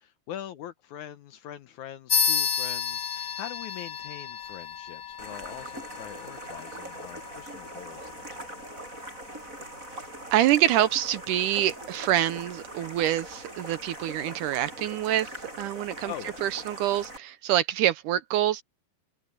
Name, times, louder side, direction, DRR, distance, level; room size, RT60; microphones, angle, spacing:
voice 1, 0.0-8.9 16.1-16.5, left 11 dB, 70° left, 1.9 m, -43 dB
sound 1, 2.1-12.1, left 6 dB, 35° left, 1.5 m, -33 dB
sound 2, 5.2-17.2, right 1 dB, 20° right, 7.2 m, -42 dB
voice 2, 10.3-15.3 15.6-16.1 16.4-18.6, right 12 dB, 75° right, 2.0 m, -26 dB
omnidirectional pair, 4.2 m